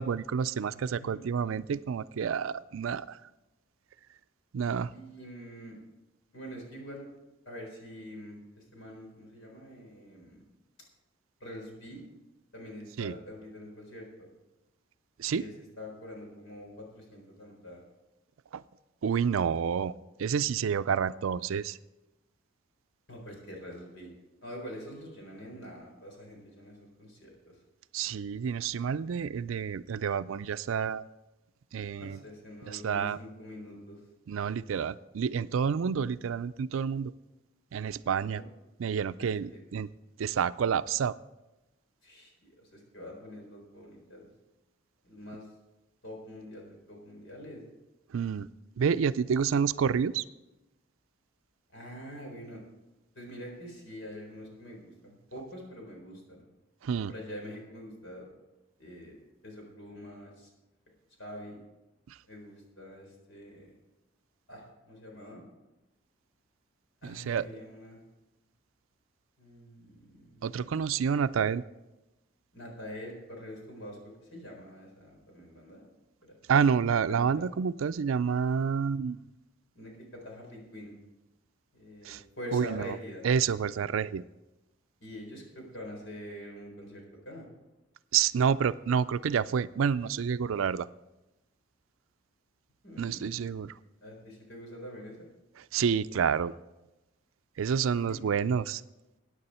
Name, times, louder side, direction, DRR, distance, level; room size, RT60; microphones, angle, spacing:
voice 1, 0.0-3.2 4.5-4.9 13.0-13.1 15.2-15.4 18.5-18.6 19.0-19.9 20.2-21.8 27.9-31.0 31.7-32.2 32.7-33.2 34.3-37.1 37.7-38.4 38.8-39.9 40.2-41.1 48.1-48.5 48.8-50.2 56.8-57.1 67.0-67.4 70.4-71.6 76.5-79.2 82.0-82.2 82.5-82.9 83.2-84.2 88.1-90.9 93.0-93.7 95.7-96.5 97.6-98.8, right 7 dB, 85° right, 15 dB, 0.4 m, -29 dB
voice 2, 0.7-1.3 4.9-5.8 6.3-7.0 7.5-10.4 11.4-12.0 12.5-14.3 15.3-17.8 23.1-24.1 24.4-27.6 32.0-34.0 38.3-38.4 39.2-39.6 42.0-44.3 45.0-45.5 46.0-47.6 51.7-52.6 53.1-56.4 57.1-58.3 58.8-59.1 59.4-60.5 61.2-61.6 62.3-63.7 64.5-65.4 67.0-68.0 69.4-70.6 72.5-75.8 76.2-76.3 77.1-77.4 79.7-80.9 81.7-83.2 85.0-87.5 92.8-93.5 94.0-95.3 98.0-98.2, equal, 65° left, 0 dB, 4.2 m, -45 dB
14.5 x 9.7 x 4.3 m, 0.99 s
head